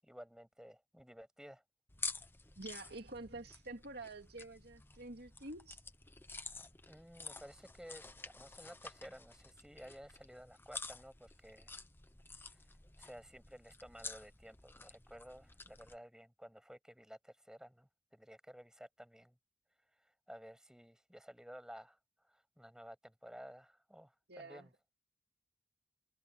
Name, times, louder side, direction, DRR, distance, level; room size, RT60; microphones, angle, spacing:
voice 1, 0.0-1.6 6.9-11.8 12.5-12.6 13.0-19.4 20.0-22.0 22.3-24.7, equal, 5° right, 7.6 m, -54 dB
sound 1, 1.9-16.0, left 3 dB, 10° left, 0.9 m, -50 dB
voice 2, 2.6-5.8 24.3-24.7, right 2 dB, 60° right, 2.4 m, -48 dB
head